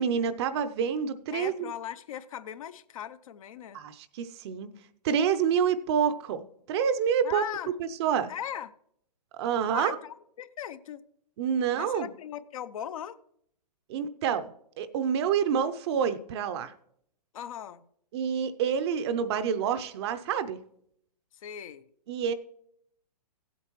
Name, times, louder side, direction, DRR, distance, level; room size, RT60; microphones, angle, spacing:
voice 1, 0.0-1.7 3.7-4.7 5.0-7.4 7.8-8.3 9.3-10.0 11.4-12.1 13.9-16.7 18.1-20.6 22.1-22.3, right 7 dB, 40° right, 0.6 m, -28 dB
voice 2, 1.3-3.8 7.2-7.7 8.3-8.7 9.7-11.0 11.7-13.2 17.3-17.8 21.3-21.9, left 10 dB, 55° left, 0.6 m, -39 dB
16.0 x 8.2 x 3.0 m
hypercardioid pair, 125°, 21 cm